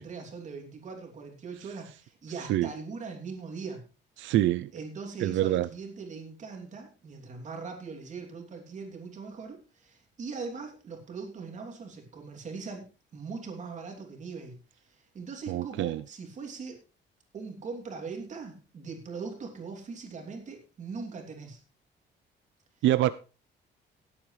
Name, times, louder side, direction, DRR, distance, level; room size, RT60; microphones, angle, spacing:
voice 1, 0.0-3.8 4.7-12.9 13.1-16.8 17.3-21.6, right 4 dB, 40° right, 2 dB, 3.0 m, -41 dB
voice 2, 4.2-4.7 5.2-5.7 15.5-16.0 22.8-23.1, right 14 dB, 90° right, 14 dB, 0.5 m, -25 dB
18.0 x 8.7 x 3.2 m, 0.32 s
cardioid pair, 175°, 20 cm